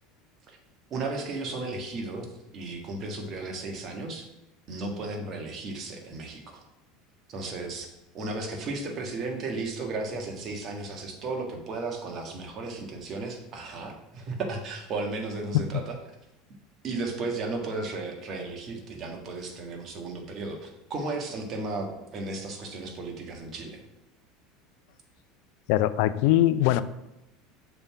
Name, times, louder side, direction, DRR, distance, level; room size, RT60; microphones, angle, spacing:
voice 1, 0.9-2.3 2.5-4.3 4.7-6.6 7.3-7.9 8.1-16.0 16.8-23.8, right 3 dB, 45° right, 3 dB, 1.5 m, -34 dB
voice 2, 25.7-26.8, left 14 dB, 70° left, 14 dB, 0.4 m, -21 dB
6.7 x 3.6 x 5.9 m, 0.92 s
hypercardioid pair, 90°, 0 cm